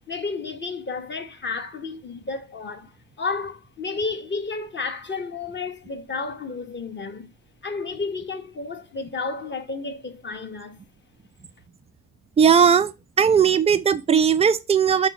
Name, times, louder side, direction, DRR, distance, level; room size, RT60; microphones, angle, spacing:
voice 1, 0.1-7.3 7.6-10.8, left 4 dB, 25° left, 1.0 m, -32 dB
voice 2, 12.4-12.9 13.2-15.1, right 7 dB, 15° right, 0.4 m, -18 dB
4.8 x 3.8 x 5.7 m
figure-of-eight pair, 45°, 46 cm